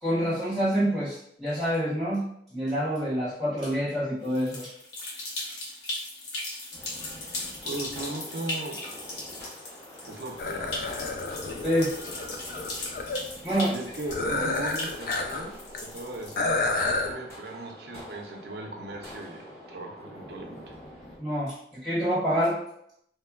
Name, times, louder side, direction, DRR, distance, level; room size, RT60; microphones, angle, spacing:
voice 1, 0.0-2.2 2.5-4.7 5.5-5.6 11.6-11.9 13.4-13.8 21.2-22.6, equal, ahead, -15 dB, 0.8 m, -27 dB
sound 1, 4.2-16.7, left 2 dB, 70° left, 0.8 m, -38 dB
sound 2, 6.7-21.2, equal, 15° left, 1.1 m, -46 dB
voice 2, 7.6-8.9 10.1-11.0 13.7-15.5 15.8-20.8, right 2 dB, 60° right, 2 dB, 0.4 m, -38 dB
sound 3, 10.4-13.2 14.1-15.4 15.7-15.8 16.4-17.1, left 3 dB, 50° left, 0.3 m, -30 dB
3.1 x 2.2 x 2.2 m, 0.72 s
head